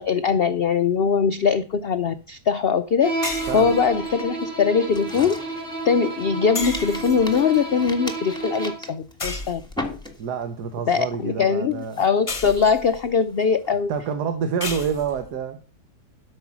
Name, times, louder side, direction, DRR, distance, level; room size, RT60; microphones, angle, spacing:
voice 1, 0.0-5.4 5.8-9.6 10.9-13.9, left 6 dB, 85° left, 11 dB, 0.5 m, -21 dB
Bowed string instrument, 3.0-8.9, right 2 dB, 30° right, 3.5 m, -31 dB
sound 1, 3.2-4.2 6.5-7.6 9.2-10.1 12.3-13.1 14.6-15.3, left 3 dB, 25° left, 0.8 m, -33 dB
sound 2, 4.9-6.4 6.7-10.5 10.9-11.2 11.7-14.0, left 1 dB, 5° left, 1.3 m, -38 dB
voice 2, 10.2-12.0 13.9-15.6, right 7 dB, 75° right, 8 dB, 1.6 m, -27 dB
12.5 x 5.5 x 6.1 m, 0.35 s
omnidirectional pair, 1.8 m